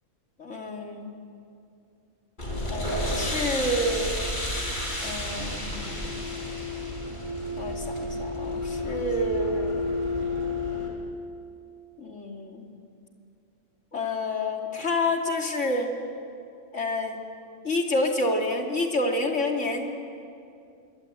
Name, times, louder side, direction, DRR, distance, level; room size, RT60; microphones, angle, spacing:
voice 1, 0.4-1.2 2.7-4.2 5.0-5.8 7.6-9.9 12.0-12.7 13.9-15.9 16.7-17.2 17.6-19.9, left 1 dB, 60° left, 2 dB, 3.0 m, -28 dB
sound 1, 2.4-10.9, left 1 dB, 35° left, 4.9 m, -30 dB
26.5 x 23.0 x 8.9 m, 2.5 s
omnidirectional pair, 1.4 m